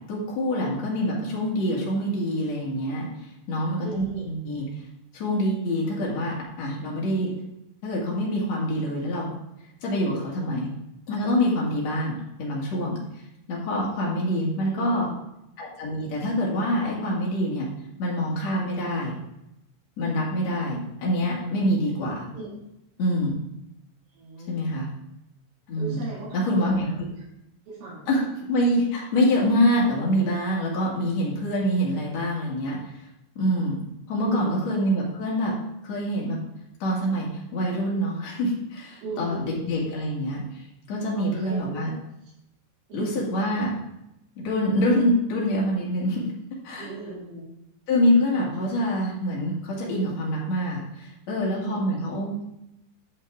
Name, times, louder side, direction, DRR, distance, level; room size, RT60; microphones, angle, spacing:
voice 1, 0.1-3.1 3.5-4.6 5.1-7.3 7.8-9.3 9.8-10.7 11.1-13.0 13.5-15.1 15.6-17.7 18.0-19.2 20.0-22.3 23.0-23.3 24.5-24.9 25.7-26.0 26.3-26.9 28.1-32.8 33.4-33.8 34.1-35.5 35.8-36.4 36.8-41.9 42.9-43.7 44.4-46.3 46.6-46.9 47.9-52.4, equal, 60° left, -4 dB, 1.9 m, -25 dB
voice 2, 3.8-4.3 14.5-15.2 22.3-22.5 24.1-24.6 25.8-27.0 27.7-28.1 34.2-34.6 39.0-39.7 41.1-41.7 42.9-43.1 46.8-47.5 51.5-51.8, right 3 dB, 75° right, -7 dB, 4.7 m, -37 dB
10.5 x 5.6 x 3.6 m, 0.85 s
omnidirectional pair, 5.8 m